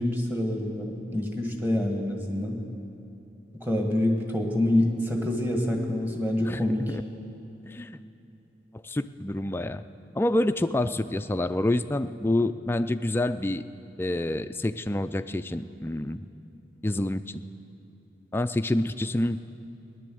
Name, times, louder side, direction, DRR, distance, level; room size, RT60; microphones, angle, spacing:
voice 1, 0.0-2.6 3.6-6.8, left 1 dB, 10° right, 2 dB, 1.6 m, -26 dB
voice 2, 6.4-7.0 7.6-8.0 8.8-9.8 10.2-13.6 14.0-16.3 16.8-17.4 18.3-19.4, left 1 dB, 15° left, 10 dB, 0.3 m, -27 dB
17.0 x 11.0 x 7.8 m, 2.9 s
head